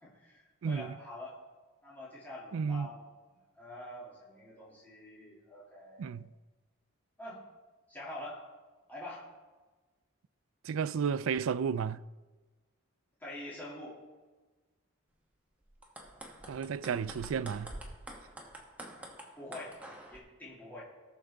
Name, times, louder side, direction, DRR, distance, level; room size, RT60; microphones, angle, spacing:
voice 1, 0.0-1.4 1.8-3.0 3.6-6.1 7.2-7.4 7.9-8.4 8.9-9.3 13.2-14.0 19.4-19.8 20.1-20.8, left 1 dB, 10° left, 2.4 m, -45 dB
voice 2, 0.6-1.0 2.5-2.9 6.0-6.3 10.6-12.0 16.5-17.7, right 6 dB, 75° right, 0.4 m, -32 dB
sound 1, 15.7-20.2, right 1 dB, 5° right, 1.1 m, -47 dB
18.0 x 6.5 x 3.5 m
head